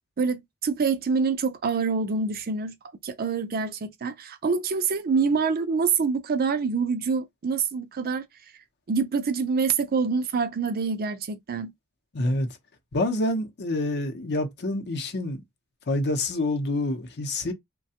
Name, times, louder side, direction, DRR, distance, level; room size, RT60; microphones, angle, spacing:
voice 1, 0.2-2.7 3.0-8.2 8.9-11.7, right 5 dB, 45° right, 0.5 m, -26 dB
voice 2, 12.1-12.5 12.9-15.4 15.9-17.5, left 1 dB, 50° left, 0.7 m, -27 dB
3.2 x 2.2 x 2.8 m
head